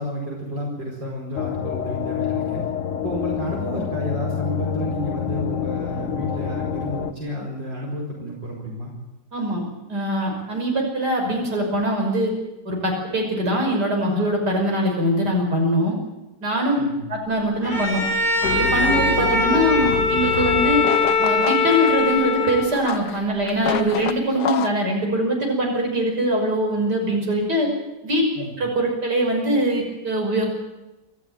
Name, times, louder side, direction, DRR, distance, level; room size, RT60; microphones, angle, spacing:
voice 1, 0.0-2.6 3.0-8.9 16.8-17.0 28.3-28.5, equal, 85° right, -1 dB, 5.6 m, -31 dB
sound 1, 1.4-7.1, left 8 dB, 45° left, 1.5 m, -27 dB
voice 2, 9.3-9.6 9.9-12.3 12.6-16.0 16.4-16.8 17.1-18.0 18.5-20.9 21.2-27.7 28.0-28.3 28.6-30.5, equal, 65° right, 1 dB, 6.5 m, -22 dB
Bowed string instrument, 17.6-22.9, left 3 dB, 10° right, 5.0 m, -21 dB
sound 2, 18.4-24.7, left 7 dB, 65° left, 1.6 m, -28 dB
26.5 x 14.0 x 9.1 m, 1.0 s
omnidirectional pair, 1.9 m